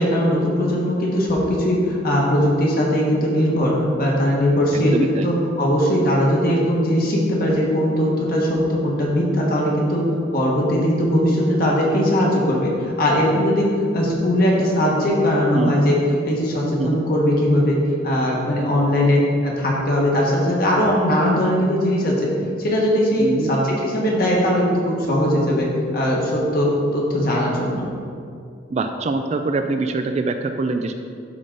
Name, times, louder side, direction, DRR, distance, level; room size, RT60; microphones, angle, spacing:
voice 1, 0.0-4.9 5.2-10.0 10.3-13.7 13.9-16.0 16.2-17.8 18.0-22.3 22.6-25.7 25.9-27.8, equal, 50° left, -3 dB, 1.5 m, -19 dB
voice 2, 4.7-5.3 15.5-15.7 16.8-17.0 23.2-23.5 28.7-30.9, right 3 dB, 35° right, 7 dB, 0.3 m, -23 dB
11.5 x 3.8 x 3.8 m, 2.4 s
head